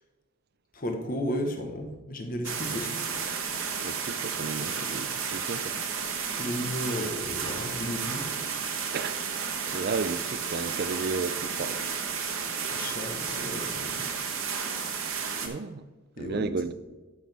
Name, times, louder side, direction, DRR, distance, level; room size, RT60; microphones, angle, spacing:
voice 1, 0.7-3.0 6.4-8.3 12.6-14.1 16.2-16.5, equal, 40° left, 1.2 m, -34 dB
sound 1, 2.4-15.5, right 6 dB, 70° right, 1.3 m, -32 dB
voice 2, 3.8-5.8 8.9-9.3 9.7-11.8 15.4-15.9 16.2-16.7, right 4 dB, 45° right, 0.4 m, -33 dB
13.0 x 6.1 x 3.4 m
head